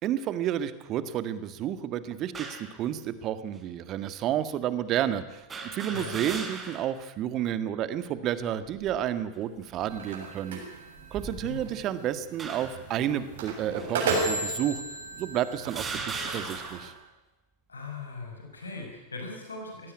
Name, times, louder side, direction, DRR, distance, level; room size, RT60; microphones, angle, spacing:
voice 1, 0.0-10.6 11.1-14.8 15.2-16.9, right 10 dB, 35° right, 12 dB, 1.7 m, -31 dB
sound 1, 2.3-2.7 3.6-3.7 5.5-7.0 7.4-7.5 8.6-9.1 9.8-10.0 11.0-11.8 12.4-12.9 13.8-13.9 14.8-14.9 15.6-17.0, right 4 dB, 20° right, 4.0 m, -38 dB
sound 2, 9.9-16.9, right 3 dB, 65° right, 7.4 m, -34 dB
voice 2, 11.2-11.6 17.7-19.9, left 3 dB, 80° left, 2 dB, 6.0 m, -40 dB
21.0 x 17.0 x 9.8 m, 1.1 s
figure-of-eight pair, 90°, 0 cm